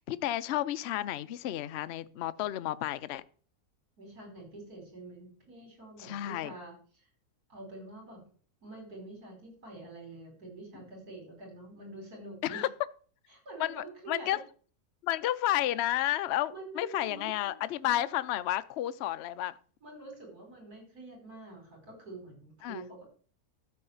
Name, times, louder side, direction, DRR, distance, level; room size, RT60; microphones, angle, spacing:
voice 1, 0.0-3.2 6.0-6.5 12.4-12.7 13.6-14.4 15.0-19.5 22.6-22.8, left 13 dB, 65° left, 0.7 m, -31 dB
voice 2, 4.0-7.1 7.5-8.2 8.6-12.7 13.3-14.4 16.5-18.2 19.8-23.0, right 2 dB, 75° right, 5.4 m, -47 dB
13.0 x 4.7 x 7.0 m
omnidirectional pair, 1.6 m